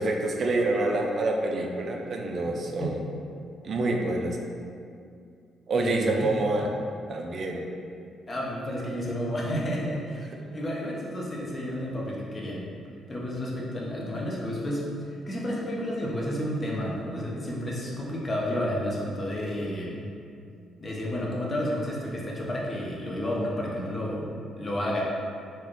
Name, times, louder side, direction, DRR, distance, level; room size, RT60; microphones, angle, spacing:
voice 1, 0.0-3.0 3.6-4.4 5.7-6.7 7.1-7.6, right 2 dB, 50° right, 2 dB, 0.3 m, -27 dB
voice 2, 5.7-6.2 8.3-12.6 13.1-20.0 20.8-25.0, equal, 30° left, -3 dB, 0.6 m, -31 dB
3.5 x 2.1 x 2.5 m, 2.4 s
cardioid pair, 90°, 0 cm